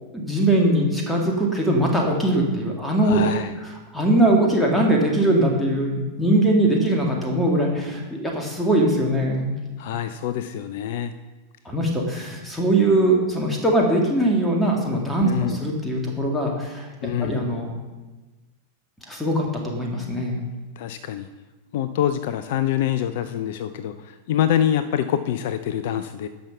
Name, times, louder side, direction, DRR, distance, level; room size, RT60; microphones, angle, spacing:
voice 1, 0.1-3.2 3.9-9.5 11.7-16.9 17.2-17.7 19.1-20.4, right 1 dB, 5° left, -1 dB, 2.2 m, -21 dB
voice 2, 3.0-3.5 9.8-11.1 15.2-15.6 17.0-17.5 20.8-21.3 21.7-26.3, left 10 dB, 50° left, 12 dB, 0.4 m, -25 dB
10.5 x 6.1 x 5.9 m, 1.2 s
figure-of-eight pair, 90°, 0 cm